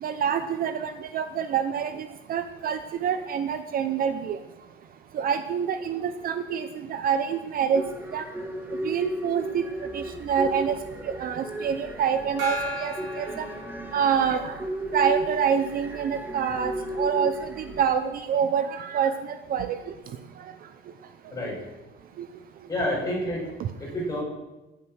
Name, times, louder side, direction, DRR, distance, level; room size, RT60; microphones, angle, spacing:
voice 1, 0.0-4.4 5.1-7.8 8.1-8.2 8.8-9.6 9.9-10.7 11.0-13.4 13.9-14.5 14.9-17.3 17.8-19.1 19.5-19.8 22.2-22.3 23.6-23.7, right 7 dB, 45° right, 10 dB, 0.7 m, -26 dB
sound 1, 7.7-17.9, right 1 dB, 10° right, 1.4 m, -34 dB
Gong, 12.4-14.4, equal, 65° right, 4.5 m, -35 dB
voice 2, 22.7-23.4 23.8-24.2, left 1 dB, 15° left, -4 dB, 5.9 m, -28 dB
15.0 x 9.4 x 6.3 m, 1.0 s
cardioid pair, 175°, 21 cm